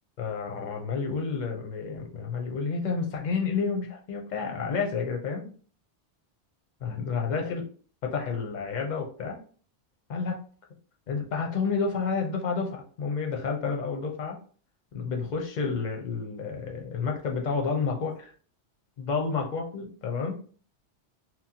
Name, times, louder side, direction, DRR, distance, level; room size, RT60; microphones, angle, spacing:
voice 1, 0.2-5.5 6.8-7.6 8.0-9.4 10.1-10.4 11.1-14.4 14.9-18.3 19.0-20.4, left 5 dB, 50° left, 1 dB, 0.6 m, -30 dB
2.9 x 2.1 x 2.7 m, 0.42 s
omnidirectional pair, 1.2 m